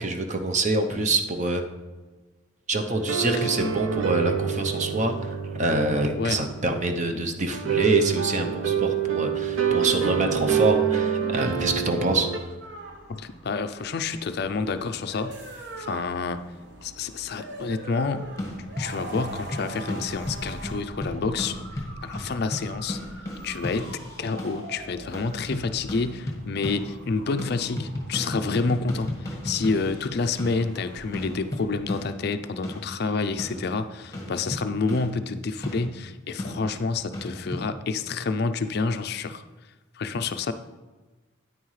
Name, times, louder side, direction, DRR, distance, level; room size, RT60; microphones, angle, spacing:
voice 1, 0.0-1.6 2.7-12.5, right 2 dB, 35° right, 5 dB, 0.7 m, -26 dB
sound 1, 2.7-12.4, right 8 dB, 75° right, 0.6 m, -27 dB
sound 2, 12.6-32.0, right 1 dB, 55° right, 1.1 m, -43 dB
voice 2, 13.1-16.4 16.8-18.3 18.8-23.0 23.4-39.4 39.9-40.5, left 4 dB, 50° left, 10 dB, 0.4 m, -29 dB
sound 3, 18.4-24.8 25.1-27.1 27.4-37.7, left 1 dB, 15° left, 1.4 m, -36 dB
9.3 x 9.2 x 3.2 m, 1.3 s
head